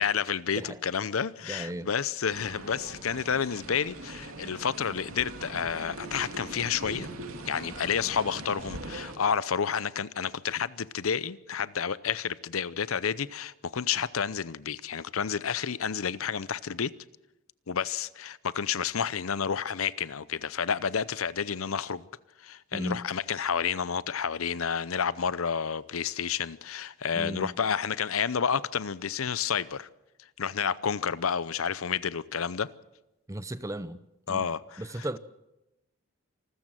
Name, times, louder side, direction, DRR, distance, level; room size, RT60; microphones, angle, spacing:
voice 1, 0.0-7.1 7.5-16.9 17.7-22.1 22.4-29.9 30.4-32.7 34.3-35.2, left 7 dB, 85° left, 0.7 m, -30 dB
voice 2, 1.4-1.9 22.7-23.1 27.1-27.6 33.3-34.0 34.3-34.5 34.8-35.2, right 1 dB, 15° right, 0.7 m, -35 dB
sound 1, 2.3-9.2, right 2 dB, 90° right, 2.5 m, -41 dB
27.0 x 14.0 x 7.6 m
head